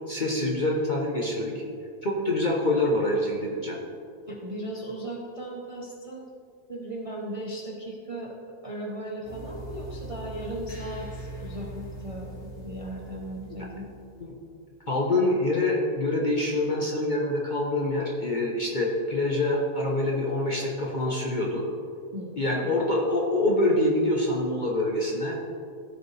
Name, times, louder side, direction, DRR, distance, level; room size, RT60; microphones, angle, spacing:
voice 1, 0.1-1.5 2.0-3.8 13.5-13.6 14.2-14.3 14.9-21.6 22.4-25.4, left 1 dB, 40° left, -3 dB, 0.8 m, -25 dB
voice 2, 4.3-6.3 6.7-8.3 8.6-13.9 22.1-22.8, right 1 dB, 30° right, -2 dB, 0.6 m, -37 dB
sound 1, 9.2-14.4, right 2 dB, 80° left, 2.4 m, -41 dB
14.5 x 5.0 x 3.3 m, 2.4 s
omnidirectional pair, 1.7 m